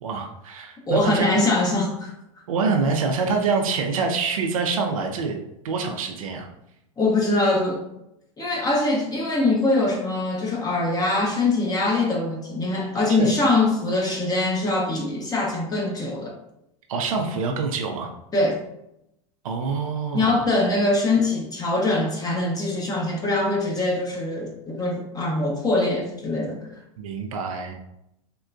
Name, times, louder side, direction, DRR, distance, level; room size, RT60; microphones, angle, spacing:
voice 1, 0.0-1.4 2.5-5.4 5.6-6.5 13.2-13.3 16.9-18.1 19.4-20.4 27.0-27.7, right 4 dB, 90° right, 3 dB, 0.4 m, -25 dB
voice 2, 0.9-2.1 7.0-7.8 8.4-16.3 18.3-18.6 20.1-26.6, left 2 dB, 20° left, -1 dB, 0.8 m, -23 dB
3.6 x 2.2 x 2.5 m, 0.82 s
hypercardioid pair, 100°, 17 cm